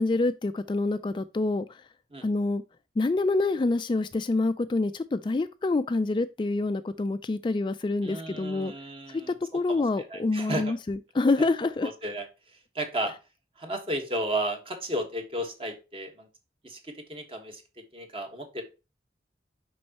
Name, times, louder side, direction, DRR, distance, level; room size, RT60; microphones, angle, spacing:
voice 1, 0.0-1.8 2.2-2.6 3.0-8.7 9.1-9.2 9.5-11.9, left 3 dB, 25° left, 0.3 m, -27 dB
voice 2, 8.0-10.8 11.8-12.3 12.7-13.1 13.6-16.3 16.6-18.6, right 1 dB, 30° right, 1.4 m, -34 dB
6.2 x 5.3 x 2.9 m
head